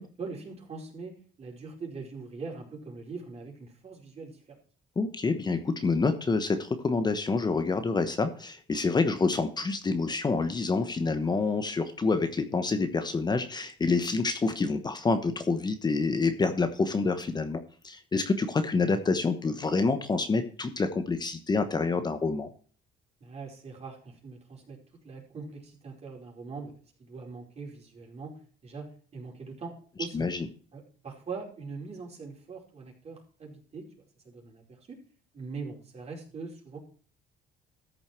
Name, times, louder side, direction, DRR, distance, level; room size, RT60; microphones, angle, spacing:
voice 1, 0.2-1.1 1.4-4.6 23.2-24.8 25.0-26.7 27.0-30.2 30.7-33.8 34.2-35.0 35.3-36.8, right 4 dB, 40° right, -1 dB, 4.8 m, -42 dB
voice 2, 5.0-22.5 30.1-30.4, left 4 dB, 25° left, 8 dB, 1.1 m, -27 dB
14.0 x 6.8 x 4.5 m, 0.43 s
cardioid pair, 110°, 17 cm